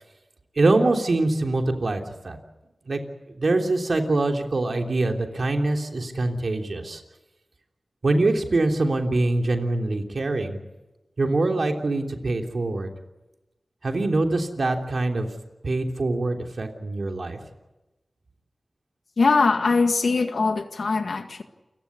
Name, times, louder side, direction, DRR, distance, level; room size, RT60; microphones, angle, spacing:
voice 1, 0.5-2.4 2.9-3.0 3.3-7.0 8.0-10.6 11.2-12.9 13.8-15.3 15.6-17.4, right 2 dB, 70° right, 3 dB, 3.3 m, -24 dB
voice 2, 19.2-21.4, left 4 dB, 80° left, 7 dB, 1.9 m, -21 dB
29.0 x 16.0 x 9.7 m, 1.1 s
cardioid pair, 45°, 0 cm